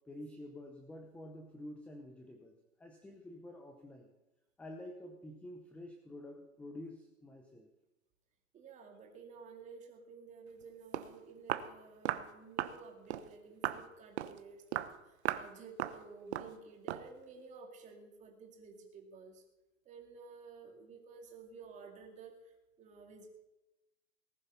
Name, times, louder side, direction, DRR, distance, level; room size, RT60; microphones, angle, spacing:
voice 1, 0.1-4.1 4.6-7.7, left 1 dB, 5° left, 4 dB, 0.7 m, -49 dB
voice 2, 8.5-19.4 19.9-23.3, right 4 dB, 15° right, 3 dB, 2.5 m, -53 dB
Walk footsteps, 10.6-10.7 10.9-11.1 11.5-11.7 12.0-12.3 12.6-12.8 13.1-13.3 13.6-13.8 14.2-14.4 14.7-14.9 15.2-15.5 15.8-16.0 16.3-16.5 16.9-17.1, right 11 dB, 55° right, 1.1 m, -36 dB
19.0 x 11.0 x 5.7 m, 0.99 s
hypercardioid pair, 150°, 40 cm